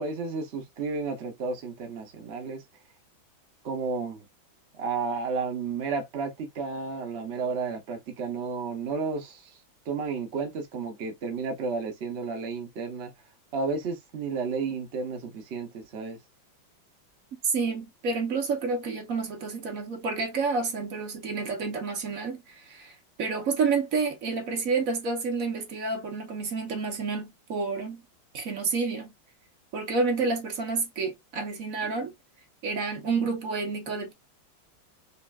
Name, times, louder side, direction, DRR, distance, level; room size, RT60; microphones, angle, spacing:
voice 1, 0.0-2.6 3.6-4.3 4.7-9.6 9.9-13.1 13.5-16.2, right 4 dB, 70° right, 0.6 m, -32 dB
voice 2, 17.4-28.0 28.3-29.1 29.7-32.1 32.6-34.1, right 4 dB, 50° right, 1.2 m, -29 dB
5.3 x 2.4 x 2.4 m
omnidirectional pair, 2.2 m